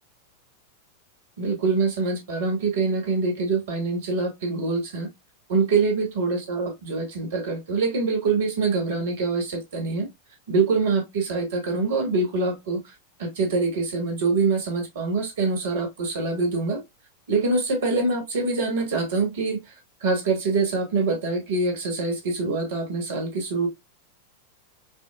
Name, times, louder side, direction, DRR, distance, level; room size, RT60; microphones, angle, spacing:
voice 1, 1.4-5.1 5.5-10.1 10.5-12.8 13.2-16.8 17.3-19.6 20.0-23.7, right 3 dB, 55° right, 1.2 m, -24 dB
5.5 x 2.0 x 2.4 m
figure-of-eight pair, 90°, 0 cm